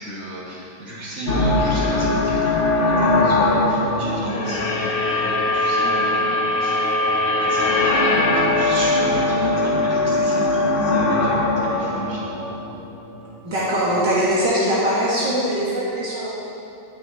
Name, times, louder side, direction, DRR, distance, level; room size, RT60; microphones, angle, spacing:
voice 1, 0.0-12.5, equal, 35° right, -8 dB, 3.0 m, -32 dB
sound 1, 1.3-13.4, left 2 dB, 35° left, 1.0 m, -20 dB
voice 2, 13.4-16.3, equal, 65° right, -8 dB, 2.4 m, -21 dB
19.0 x 6.3 x 4.6 m, 2.7 s
omnidirectional pair, 2.0 m